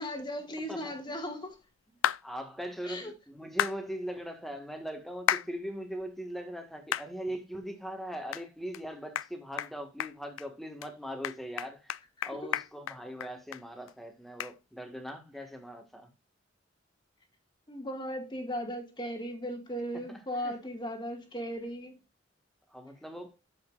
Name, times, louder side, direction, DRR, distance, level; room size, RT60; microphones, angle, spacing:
voice 1, 0.0-1.6 2.9-3.1 17.7-22.0, equal, 25° left, 1.9 m, -37 dB
sound 1, 2.0-2.2 3.6-3.8 5.3-5.5 6.0-6.1 6.9-7.1 7.6-7.7 8.3-8.4 8.7-8.8 9.1-9.3 9.6-9.7 10.0-10.5 10.8-10.9 11.2-13.6 13.9-14.0 14.4-14.5, left 10 dB, 90° left, 0.4 m, -31 dB
voice 2, 2.2-12.0 12.2-16.1 20.1-20.5 22.7-23.4, equal, ahead, 1.7 m, -40 dB
10.5 x 7.2 x 2.5 m
head